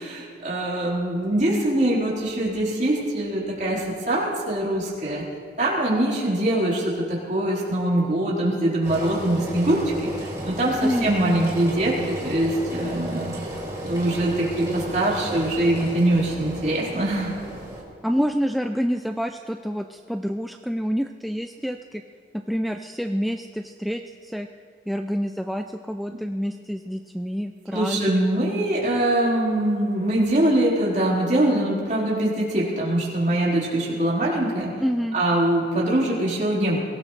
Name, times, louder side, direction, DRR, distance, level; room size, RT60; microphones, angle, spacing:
voice 1, 0.0-5.2 5.6-13.3 13.8-17.3 26.1-26.2 27.7-34.7 35.1-36.8, right 1 dB, 40° right, -6 dB, 4.2 m, -23 dB
Engine, 8.8-17.8, right 1 dB, 20° right, 2.6 m, -34 dB
voice 2, 18.0-22.0 22.3-24.5 24.9-28.2 34.8-35.2, equal, ahead, 5 dB, 0.3 m, -27 dB
23.0 x 17.5 x 3.3 m, 2.2 s
head